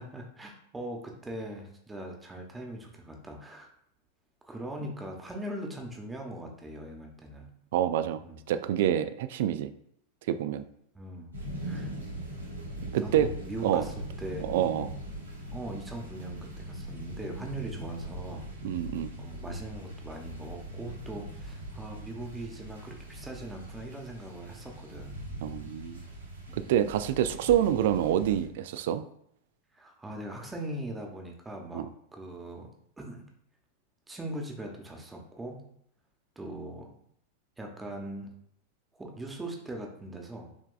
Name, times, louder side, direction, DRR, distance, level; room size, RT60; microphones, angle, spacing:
voice 1, 0.0-3.7 4.4-7.6 8.2-8.4 10.9-11.3 11.6-11.9 13.0-14.5 15.5-18.5 19.2-25.3 26.5-26.8 29.7-33.3 34.1-35.7 36.4-36.9 37.6-38.3 39.0-40.5, right 1 dB, 10° right, 1 dB, 1.0 m, -41 dB
voice 2, 7.7-8.2 8.5-9.7 10.3-10.6 12.9-13.3 13.6-13.9 14.4-14.9 18.6-19.1 25.4-26.0 26.5-29.0 31.7-31.9, right 10 dB, 55° right, 13 dB, 0.3 m, -27 dB
sound 1, 11.3-28.5, right 1 dB, 80° right, 1.5 m, -41 dB
6.2 x 3.4 x 2.3 m, 0.69 s
figure-of-eight pair, 90°, 0 cm